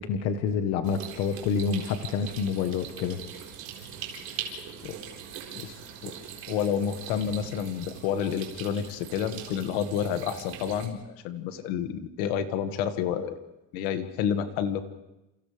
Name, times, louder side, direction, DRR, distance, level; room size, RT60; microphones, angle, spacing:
voice 1, 0.0-3.2, left 6 dB, 55° left, 7 dB, 1.3 m, -28 dB
sound 1, 0.8-10.9, right 8 dB, 55° right, 4.5 m, -41 dB
voice 2, 6.5-11.0 11.2-13.4 13.7-14.8, left 8 dB, 85° left, 8 dB, 1.9 m, -29 dB
29.5 x 28.5 x 3.4 m, 0.96 s
cardioid pair, 170°, 31 cm